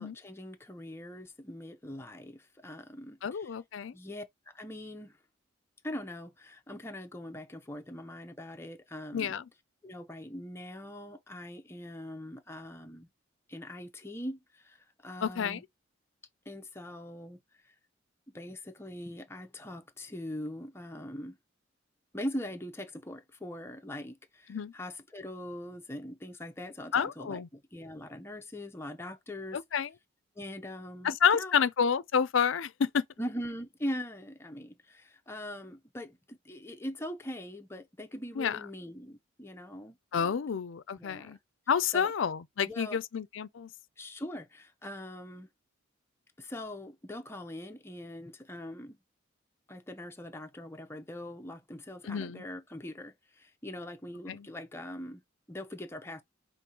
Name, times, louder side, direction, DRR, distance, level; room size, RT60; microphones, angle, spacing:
voice 1, 0.0-3.4 3.9-5.2 5.8-9.3 9.8-13.1 13.5-14.8 15.0-15.6 16.5-17.4 18.3-21.4 22.1-27.4 27.7-29.6 30.4-31.5 33.2-40.3 41.0-41.4 41.9-42.1 42.7-43.0 44.0-45.5 46.4-49.0 49.7-55.2 55.5-56.2, left 1 dB, 15° left, 0.6 m, -42 dB
voice 2, 3.2-4.0 9.1-9.4 15.2-15.6 24.5-24.7 26.9-27.5 29.5-29.9 31.0-33.1 38.4-38.6 40.1-41.4 41.7-43.7 52.0-52.4 54.3-54.5, left 7 dB, 70° left, 0.5 m, -29 dB
5.3 x 2.6 x 2.9 m
head